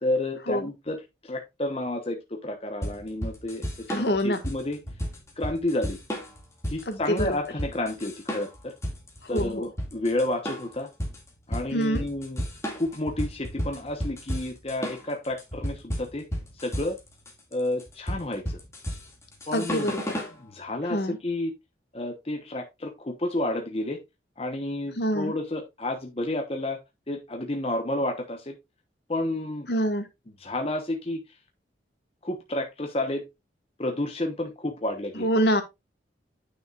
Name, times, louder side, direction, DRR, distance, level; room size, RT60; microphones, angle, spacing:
voice 1, 0.0-4.8 5.4-6.0 6.7-8.7 9.3-10.9 11.5-12.4 12.7-16.2 16.6-17.0 17.5-18.6 19.5-21.5 21.9-24.0 24.4-26.8 27.1-28.6 29.1-29.7 30.4-31.2 32.2-33.2 33.8-35.3, left 1 dB, 35° left, 1.0 m, -30 dB
sound 1, 2.8-20.4, equal, 15° left, 2.2 m, -33 dB
voice 2, 3.9-4.4 6.8-7.4 9.2-9.7 11.7-12.0 19.5-20.0 20.8-21.2 24.9-25.3 29.7-30.1 35.1-35.6, equal, 65° left, 1.6 m, -26 dB
9.3 x 6.3 x 2.4 m
head